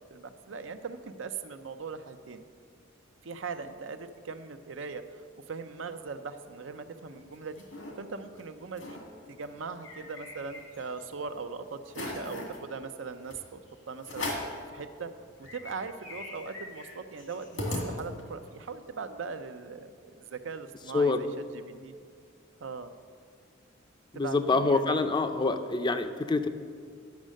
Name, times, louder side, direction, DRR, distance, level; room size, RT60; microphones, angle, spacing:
voice 1, 0.0-2.4 3.2-7.6 8.0-9.0 9.3-13.6 13.9-14.3 14.7-15.1 15.4-17.6 17.9-21.3 21.5-21.9 22.6-22.9 24.1-25.0, right 4 dB, 80° right, 9 dB, 0.6 m, -40 dB
sound 1, 7.1-7.9 8.4-8.5 8.7-9.0 9.4-11.0 11.4-11.5 11.9-12.6 13.3-13.4 14.0-14.6 15.1-15.2 15.4-18.4, left 1 dB, 85° left, 2.1 m, -38 dB
voice 2, 24.1-26.5, left 3 dB, 25° left, 9 dB, 0.5 m, -26 dB
10.5 x 6.4 x 6.3 m, 2.1 s
head